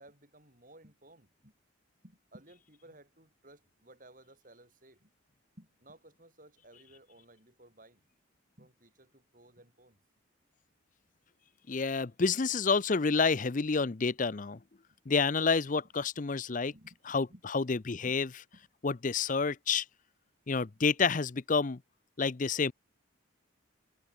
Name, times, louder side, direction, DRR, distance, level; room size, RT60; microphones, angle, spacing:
voice 1, 0.0-1.5 2.0-5.1 5.6-8.0 8.6-10.0 14.9-15.0 16.7-17.0 17.3-17.4, right 1 dB, 40° right, 6.6 m, -57 dB
voice 2, 11.7-14.6 15.1-16.7 17.1-18.3 18.8-19.9 20.5-21.8 22.2-22.7, left 4 dB, 40° left, 0.6 m, -29 dB
head